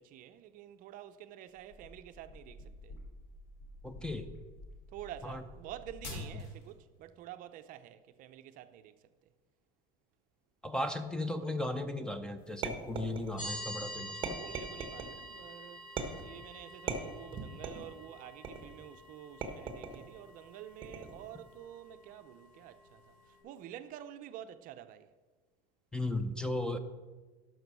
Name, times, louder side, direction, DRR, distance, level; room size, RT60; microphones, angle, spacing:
voice 1, 0.0-3.0 4.9-9.0 14.3-15.8 16.2-25.1, right 11 dB, 50° right, 0.6 m, -49 dB
sound 1, 1.6-6.7, left 1 dB, 75° left, 3.0 m, -48 dB
voice 2, 3.8-4.3 5.2-5.4 10.6-14.4 25.9-26.8, left 1 dB, 5° left, 0.6 m, -36 dB
sound 2, 12.6-13.6 14.2-15.1 16.0-16.4 16.9-17.9 18.4-18.8 19.4-20.1 20.8-21.3, right 5 dB, 25° right, 1.5 m, -39 dB
sound 3, 13.4-23.4, equal, 45° left, 3.9 m, -48 dB
12.0 x 6.1 x 6.2 m
cardioid pair, 140°, 19 cm